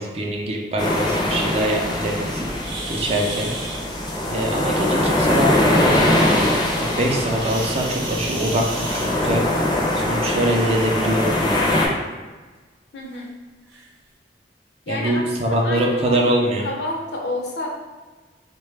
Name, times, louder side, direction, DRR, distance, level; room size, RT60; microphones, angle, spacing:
voice 1, 0.0-2.5 2.9-3.5 4.3-6.5 6.8-9.4 10.0-11.3 14.9-16.7, right 1 dB, 35° right, 0 dB, 0.4 m, -23 dB
sound 1, 0.8-11.9, left 1 dB, 25° left, 0.5 m, -22 dB
sound 2, 2.6-3.8 7.3-9.6 10.8-11.0 11.5-11.6 12.2-12.3 13.1-13.2 13.7-13.9, right 2 dB, 80° right, 0.7 m, -33 dB
voice 2, 12.9-13.4 14.9-16.2 16.6-17.7, left 2 dB, 65° left, 0 dB, 0.6 m, -29 dB
3.7 x 2.2 x 3.2 m, 1.3 s
head